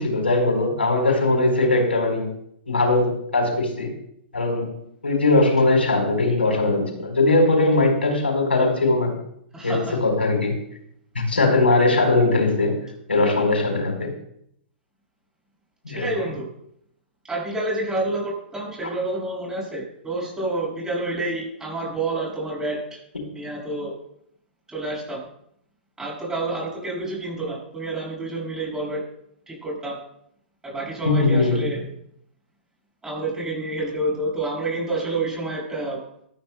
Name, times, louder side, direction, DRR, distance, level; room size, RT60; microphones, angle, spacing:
voice 1, 0.0-2.3 2.7-3.9 4.3-9.1 9.6-10.6 11.1-12.8 13.1-14.1 15.8-16.1 31.0-31.6, left 2 dB, 90° left, 2 dB, 4.3 m, -20 dB
voice 2, 9.5-10.0 15.9-16.5 17.3-23.0 23.3-23.9 24.7-25.3 26.0-29.0 29.5-30.0 30.6-31.9 33.0-36.0, right 2 dB, 10° right, -3 dB, 6.3 m, -28 dB
19.0 x 13.0 x 2.2 m, 0.72 s
hypercardioid pair, 115°, 6 cm